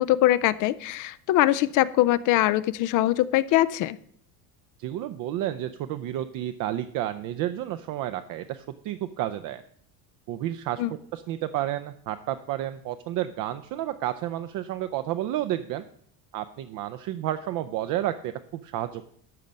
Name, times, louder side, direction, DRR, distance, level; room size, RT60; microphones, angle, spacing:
voice 1, 0.0-4.0 10.8-10.9, left 15 dB, 45° left, 16 dB, 0.4 m, -22 dB
voice 2, 4.8-9.6 10.3-10.8 11.1-15.8 16.3-19.0, right 13 dB, 50° right, 9 dB, 0.6 m, -31 dB
12.5 x 7.4 x 5.2 m, 0.63 s
cardioid pair, 155°, 43 cm